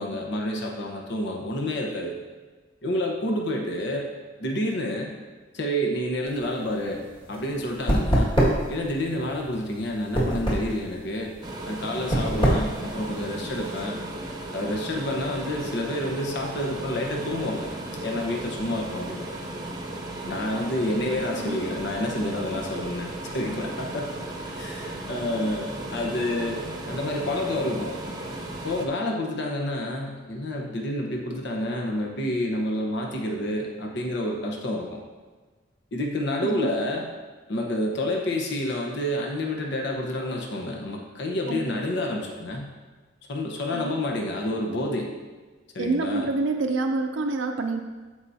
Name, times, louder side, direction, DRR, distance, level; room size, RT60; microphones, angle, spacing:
voice 1, 0.0-2.1 2.8-4.1 4.4-5.1 5.5-7.0 7.3-8.3 8.7-11.3 11.7-14.0 14.5-17.7 18.0-19.4 20.3-24.1 24.6-28.0 28.6-35.0 35.9-37.1 37.5-42.7 43.3-45.1 45.7-46.3, left 1 dB, 65° left, 0 dB, 1.1 m, -29 dB
sound 1, 6.3-13.8, equal, 25° left, 1.9 m, -25 dB
sound 2, 11.4-28.9, right 1 dB, 20° right, 0.8 m, -36 dB
voice 2, 45.8-47.8, right 3 dB, 75° right, 4 dB, 0.6 m, -27 dB
13.5 x 4.8 x 2.8 m, 1.4 s
head